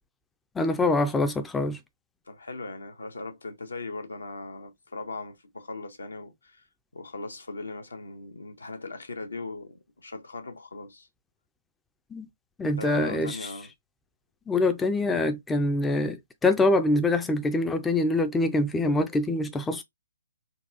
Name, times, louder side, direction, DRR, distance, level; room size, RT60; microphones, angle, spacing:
voice 1, 0.6-1.8 12.1-12.3 12.6-13.4 14.5-19.8, left 2 dB, 10° left, 0.3 m, -25 dB
voice 2, 2.3-6.7 6.9-11.1 12.6-13.7, left 3 dB, 70° left, 0.8 m, -39 dB
3.8 x 2.3 x 2.4 m
figure-of-eight pair, 130°, 0 cm